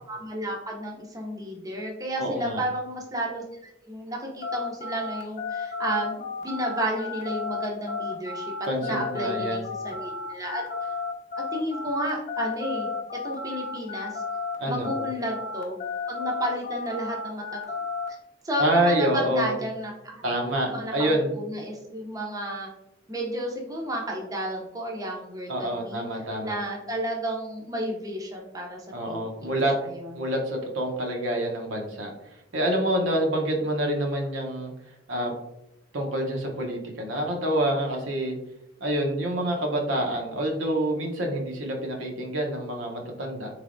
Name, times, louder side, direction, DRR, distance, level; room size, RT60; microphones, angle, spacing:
voice 1, 0.1-8.5 8.8-10.6 11.5-12.9 13.2-14.2 14.7-15.8 16.1-17.4 18.4-20.3 20.7-22.7 23.1-30.1, right 1 dB, 20° right, -1 dB, 0.6 m, -32 dB
voice 2, 2.2-2.6 8.7-9.6 14.6-14.9 18.6-19.6 20.2-21.3 25.5-26.6 28.9-29.7 30.2-34.7 35.1-35.3 35.9-38.3 38.8-43.5, right 1 dB, 80° right, 1 dB, 0.8 m, -27 dB
sound 1, 4.4-14.6 14.8-18.1, left 4 dB, 45° left, 0.6 m, -33 dB
3.9 x 3.3 x 2.5 m, 0.87 s
head